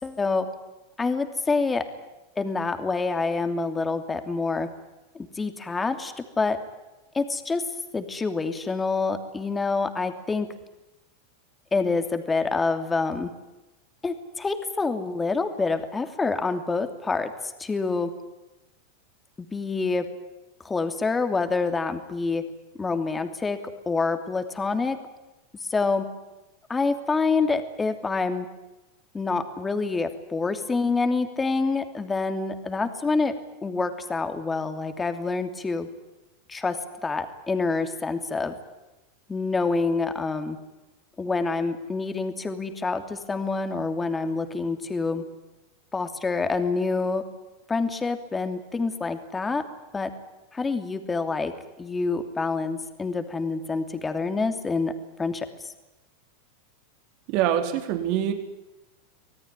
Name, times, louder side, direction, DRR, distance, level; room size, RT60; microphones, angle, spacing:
voice 1, 0.0-0.5 1.0-1.8 2.4-4.7 5.1-6.6 7.1-7.6 7.9-10.5 11.7-13.3 14.0-18.1 19.5-20.1 20.6-22.4 22.8-23.6 23.8-25.0 25.6-26.1 26.7-28.5 29.1-33.3 33.6-35.9 36.5-38.6 39.3-40.6 41.2-45.2 45.9-47.2 47.7-49.6 49.9-50.1 50.5-51.5 51.8-54.9 55.2-55.7, left 4 dB, 15° left, 7 dB, 2.9 m, -27 dB
voice 2, 57.3-58.3, right 10 dB, 55° right, 6 dB, 4.0 m, -24 dB
25.5 x 17.5 x 10.0 m, 1.0 s
hypercardioid pair, 110°, 0 cm